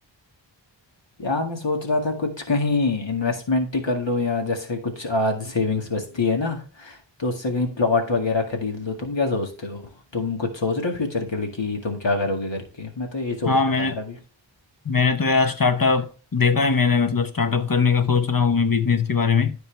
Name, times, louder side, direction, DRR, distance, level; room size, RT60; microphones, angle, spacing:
voice 1, 1.2-9.8 10.1-14.2, left 3 dB, 70° left, 2.0 m, -25 dB
voice 2, 13.5-13.9 14.8-19.5, left 5 dB, 50° left, 0.9 m, -20 dB
13.5 x 4.6 x 3.3 m
wide cardioid pair, 60°, 45 cm